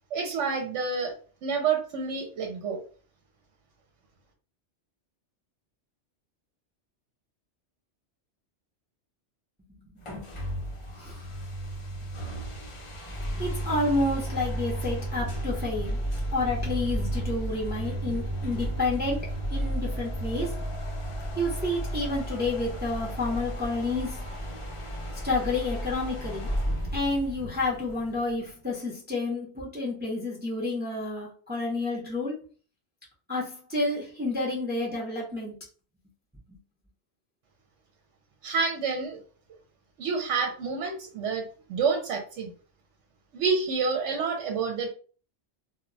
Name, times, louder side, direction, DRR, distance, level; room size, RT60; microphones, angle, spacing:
voice 1, 0.1-1.2 1.4-2.8 38.4-39.2 40.0-42.5 43.3-44.9, right 5 dB, 80° right, 3 dB, 0.9 m, -28 dB
voice 2, 9.8-10.3 11.0-11.2 13.4-16.0 16.3-20.6 21.4-24.3 25.2-26.5 26.9-32.4 33.3-35.5 36.5-36.6, left 2 dB, 10° right, -4 dB, 0.6 m, -30 dB
sound 1, 10.0-28.5, right 1 dB, 45° left, 0.4 m, -33 dB
2.2 x 2.1 x 3.7 m, 0.39 s
omnidirectional pair, 1.2 m